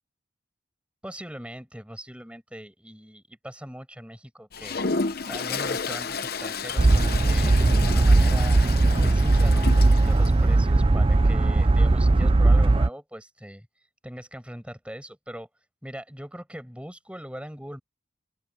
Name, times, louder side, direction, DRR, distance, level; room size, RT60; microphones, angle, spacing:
voice 1, 1.0-8.6 9.0-13.7 14.0-15.5 15.8-17.8, equal, 5° right, 7.5 m, -41 dB
Toilet flush, 4.5-10.3, left 4 dB, 50° left, 0.9 m, -32 dB
sound 1, 6.8-12.9, right 2 dB, 30° right, 0.4 m, -19 dB
open air
head